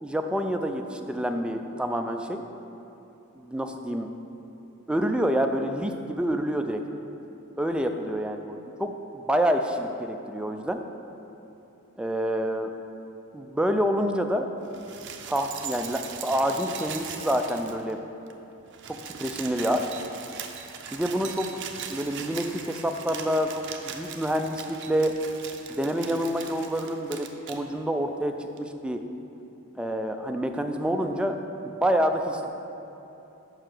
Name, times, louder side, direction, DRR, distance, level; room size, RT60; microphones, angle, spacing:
voice 1, 0.0-2.4 3.4-4.1 4.9-6.8 7.6-10.8 12.0-12.7 13.3-14.5 15.3-18.0 18.9-19.8 20.9-21.5 21.9-25.1 25.7-29.0 29.8-31.4 31.6-32.5, equal, 5° right, 5 dB, 0.3 m, -27 dB
sound 1, 14.6-18.0 18.3-18.4 18.6-27.6 28.6-28.7, right 7 dB, 60° right, 0.5 m, -40 dB
5.5 x 4.8 x 6.0 m, 2.9 s
head